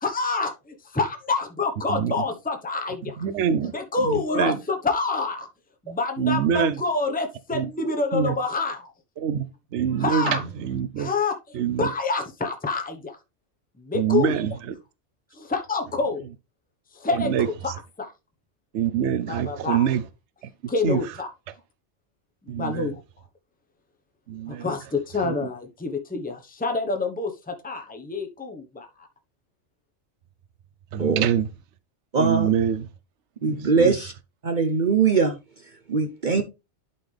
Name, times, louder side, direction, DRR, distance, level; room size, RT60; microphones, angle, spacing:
voice 1, 0.0-5.5 5.8-8.9 10.0-10.4 11.0-13.2 13.8-14.4 15.3-16.2 16.9-18.1 19.3-19.9 20.7-21.3 22.5-23.0 24.5-29.1, left 3 dB, 10° left, 1.0 m, -27 dB
voice 2, 3.2-3.7 4.1-4.6 6.2-6.7 7.5-7.7 8.1-8.3 9.2-9.4 9.7-11.1 11.5-11.9 13.9-14.7 17.2-17.5 18.7-20.0 20.8-21.0 22.5-22.9 24.3-24.6 30.9-31.5 32.2-32.8 33.5-33.9, right 8 dB, 70° right, 1.0 m, -24 dB
voice 3, 32.1-32.5 33.4-34.1 34.4-35.4 35.9-36.4, right 5 dB, 45° right, 0.8 m, -21 dB
11.5 x 4.3 x 3.3 m
omnidirectional pair, 1.3 m